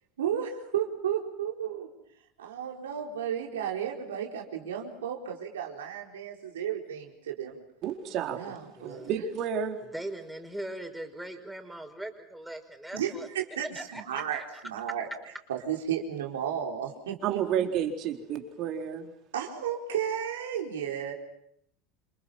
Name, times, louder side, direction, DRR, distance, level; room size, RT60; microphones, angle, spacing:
voice 1, 0.2-1.9 2.4-7.6 8.3-9.2 12.9-15.1 15.5-17.4 19.3-21.1, right 9 dB, 80° right, 1 dB, 4.5 m, -33 dB
voice 2, 7.8-8.4 9.0-9.8 17.2-19.1, right 8 dB, 50° right, 3 dB, 4.1 m, -30 dB
voice 3, 8.8-9.1 9.8-13.3 13.7-14.4, right 1 dB, 5° right, 4 dB, 5.4 m, -40 dB
29.0 x 27.5 x 5.8 m, 0.72 s
hypercardioid pair, 80°, 0 cm